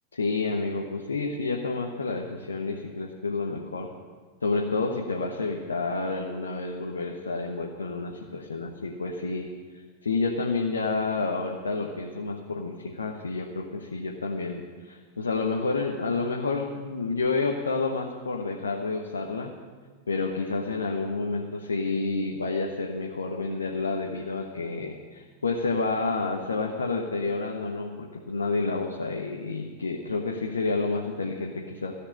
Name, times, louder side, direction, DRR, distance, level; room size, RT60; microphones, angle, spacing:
voice 1, 0.1-3.9 4.4-9.5 10.0-19.5 20.1-31.9, left 3 dB, 75° left, 1 dB, 1.1 m, -29 dB
15.5 x 6.7 x 8.8 m, 1.5 s
figure-of-eight pair, 90°, 0 cm